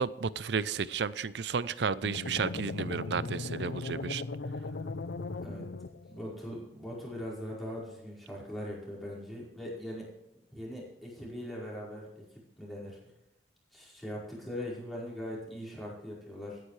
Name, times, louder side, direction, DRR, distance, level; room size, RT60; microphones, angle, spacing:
voice 1, 0.0-4.2, right 5 dB, 75° right, 17 dB, 0.5 m, -32 dB
sound 1, 2.0-6.3, left 3 dB, 75° left, 0.6 m, -38 dB
voice 2, 6.1-10.1 10.5-13.1 13.7-16.6, left 1 dB, ahead, -6 dB, 4.8 m, -41 dB
17.0 x 9.9 x 3.3 m, 0.89 s
head